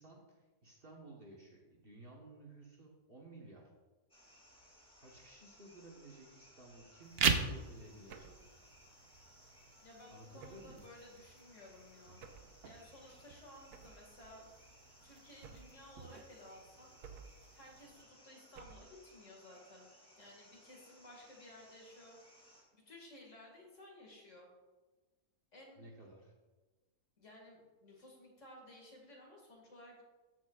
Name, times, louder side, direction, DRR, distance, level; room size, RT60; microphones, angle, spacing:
voice 1, 0.0-3.7 4.9-8.4 10.1-10.8 25.8-26.3, right 2 dB, 40° right, -2 dB, 1.2 m, -55 dB
sound 1, 4.1-22.6, equal, 5° left, 2.1 m, -63 dB
sound 2, 7.0-18.0, right 6 dB, 60° right, 0.7 m, -42 dB
sound 3, 8.1-8.5 10.4-10.8 12.2-12.6 13.7-14.1 15.4-15.9 17.0-17.5 18.5-19.0, right 6 dB, 80° right, 1.2 m, -54 dB
voice 2, 9.8-14.5 15.0-16.9 17.5-22.2 22.7-24.5 25.5-25.9 27.2-30.0, left 1 dB, 50° left, -1 dB, 2.2 m, -56 dB
14.0 x 6.1 x 2.4 m, 1.2 s
omnidirectional pair, 1.6 m